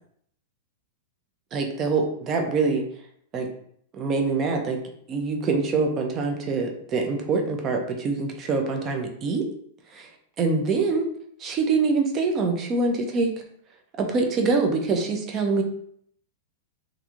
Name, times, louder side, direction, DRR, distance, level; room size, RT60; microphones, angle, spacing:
voice 1, 1.5-2.8 3.3-3.5 3.9-4.8 5.1-9.5 9.9-10.1 10.4-11.1 11.4-13.3 14.0-15.6, right 4 dB, 20° right, 3 dB, 0.3 m, -24 dB
2.9 x 2.5 x 2.3 m, 0.67 s
supercardioid pair, 175°, 0 cm